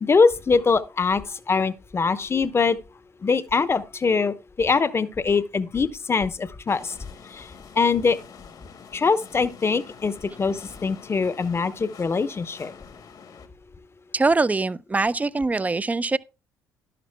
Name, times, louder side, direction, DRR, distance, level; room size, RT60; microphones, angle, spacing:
voice 1, 0.0-2.8 3.2-6.9 7.3-7.5 7.8-8.2 8.9-12.7, left 4 dB, 30° left, 0.9 m, -23 dB
sound 1, 6.7-13.5, left 6 dB, 55° left, 1.4 m, -46 dB
voice 2, 14.1-16.2, right 3 dB, 20° right, 0.5 m, -23 dB
12.0 x 11.5 x 2.3 m
hypercardioid pair, 55°, 8 cm